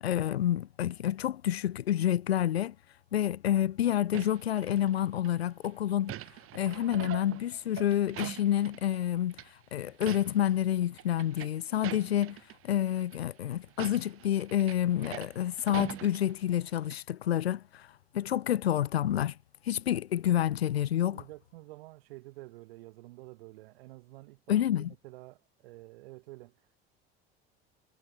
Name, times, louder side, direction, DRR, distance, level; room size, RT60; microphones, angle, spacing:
voice 1, 0.0-2.7 3.1-6.2 6.5-9.3 9.7-12.4 12.6-17.9 18.1-19.3 19.7-21.2 24.5-24.9, left 11 dB, 80° left, 1.5 m, -28 dB
sound 1, 4.1-5.3 5.6-9.0 9.3-9.5 9.9-10.5 10.8-12.6 13.0-13.2 13.7-16.7 16.9-17.0, right 15 dB, 45° right, 1.1 m, -42 dB
voice 2, 21.0-26.6, right 20 dB, 70° right, 3.5 m, -49 dB
hypercardioid pair, 65°, 31 cm